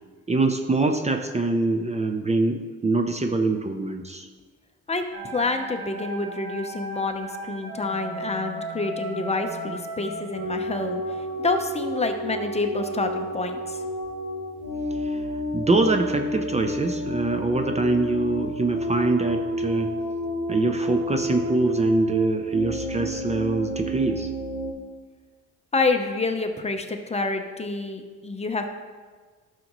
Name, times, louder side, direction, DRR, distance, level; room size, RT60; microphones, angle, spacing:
voice 1, 0.3-4.3 15.0-15.3 15.5-19.9 20.5-24.3, right 2 dB, 20° right, 5 dB, 0.6 m, -24 dB
voice 2, 4.9-13.8 25.7-28.7, left 3 dB, 20° left, 5 dB, 0.8 m, -28 dB
sound 1, 5.1-24.7, equal, 50° right, 2.7 m, -31 dB
12.0 x 6.5 x 3.1 m, 1.5 s
cardioid pair, 90°, 30 cm